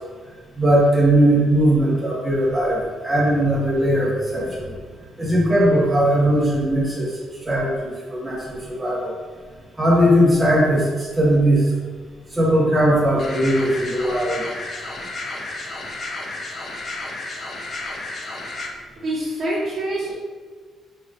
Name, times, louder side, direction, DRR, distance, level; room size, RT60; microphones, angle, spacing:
voice 1, 0.6-4.7 5.2-7.1 7.4-9.1 9.8-11.7 12.3-14.4, right 1 dB, 20° right, -6 dB, 1.4 m, -19 dB
sound 1, 13.2-18.7, left 2 dB, 45° left, 0.6 m, -32 dB
voice 2, 19.0-20.1, right 1 dB, 55° right, -5 dB, 0.8 m, -25 dB
5.0 x 3.2 x 2.5 m, 1.5 s
cardioid pair, 90°, 0 cm